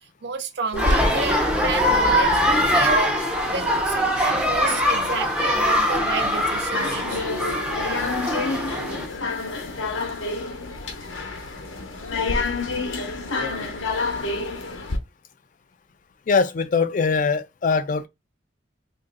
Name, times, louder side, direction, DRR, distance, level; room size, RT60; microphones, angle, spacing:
voice 1, 0.2-2.3 2.7-3.2 3.5-7.2, right 5 dB, 60° right, 0.5 m, -31 dB
sound 1, 0.7-15.0, left 3 dB, 90° left, 0.8 m, -30 dB
sound 2, 0.8-9.1, equal, 5° right, 0.6 m, -22 dB
voice 2, 16.3-18.1, left 5 dB, 45° left, 0.4 m, -22 dB
3.0 x 2.5 x 3.8 m
head